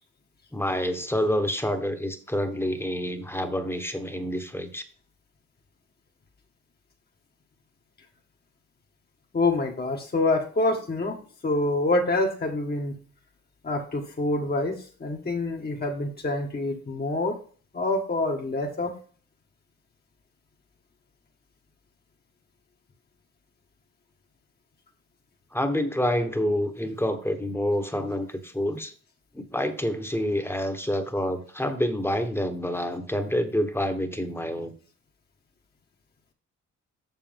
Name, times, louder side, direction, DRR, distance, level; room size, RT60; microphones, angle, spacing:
voice 1, 0.5-4.8 25.5-28.9 29.3-34.7, equal, 10° left, 7 dB, 1.4 m, -27 dB
voice 2, 9.3-11.2 11.4-13.0 13.6-17.3 17.7-18.9, left 2 dB, 30° left, 0 dB, 1.5 m, -26 dB
7.5 x 6.7 x 3.6 m, 0.42 s
supercardioid pair, 70°, 31 cm